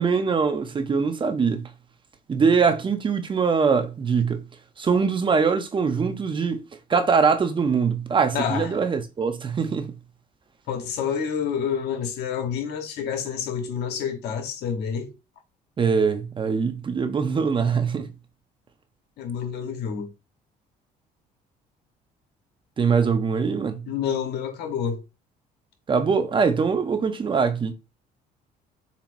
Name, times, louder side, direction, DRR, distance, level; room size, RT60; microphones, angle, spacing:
voice 1, 0.0-1.7 2.3-4.4 4.8-6.6 6.9-9.9 15.8-18.1 22.8-23.8 25.9-27.7, right 5 dB, 30° right, 0.6 m, -22 dB
voice 2, 8.3-8.8 10.7-15.1 19.2-20.1 23.9-25.0, left 7 dB, 75° left, 1.1 m, -28 dB
7.1 x 2.8 x 2.6 m
cardioid pair, 110°, 17 cm